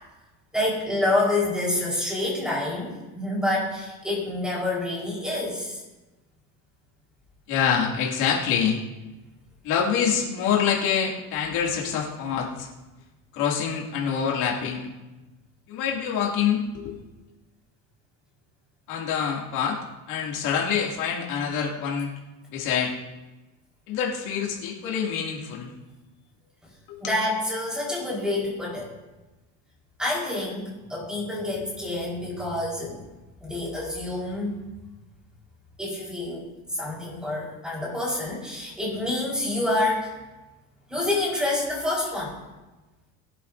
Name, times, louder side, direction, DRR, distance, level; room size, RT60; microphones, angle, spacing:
voice 1, 0.5-5.8 27.0-28.9 30.0-33.0 33.4-34.6 35.8-40.2 40.9-42.3, left 2 dB, ahead, -4 dB, 4.4 m, -27 dB
voice 2, 7.5-8.8 9.6-12.7 13.3-14.9 15.7-17.0 18.9-19.8 20.1-22.1 22.5-22.9 23.9-25.7 26.9-27.0, left 7 dB, 65° left, -2 dB, 2.6 m, -26 dB
21.5 x 11.0 x 2.7 m, 1.1 s
cardioid pair, 155°, 32 cm